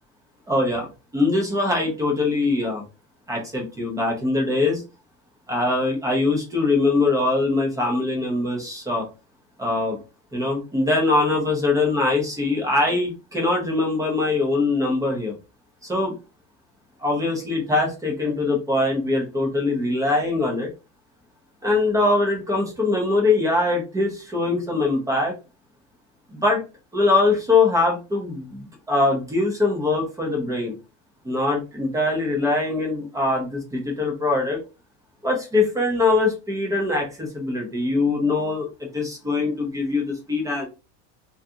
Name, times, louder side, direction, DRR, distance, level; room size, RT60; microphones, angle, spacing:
voice 1, 0.5-2.8 3.3-4.8 5.5-9.0 9.6-10.0 10.3-15.3 15.8-16.1 17.0-20.7 21.6-25.3 26.3-26.6 26.9-30.7 31.2-34.6 35.2-38.7 38.9-40.6, left 3 dB, 10° right, 0 dB, 0.6 m, -22 dB
2.4 x 2.3 x 2.7 m, 0.31 s
supercardioid pair, 145°, 35 cm